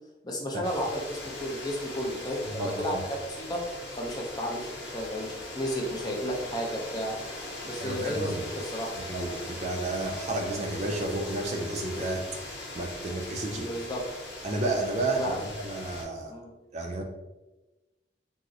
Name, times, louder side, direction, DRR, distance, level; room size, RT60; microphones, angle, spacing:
voice 1, 0.2-3.6 4.0-7.1 7.6-8.9 13.5-14.0 15.1-15.4 16.3-16.5, equal, 20° left, -1 dB, 0.5 m, -33 dB
sound 1, 0.6-16.0, left 2 dB, 85° left, 0.8 m, -40 dB
voice 2, 2.5-3.0 7.8-8.4 9.0-13.7 14.4-16.3 16.7-17.0, right 2 dB, 40° right, 2 dB, 0.4 m, -32 dB
3.7 x 2.0 x 2.6 m, 1.1 s
head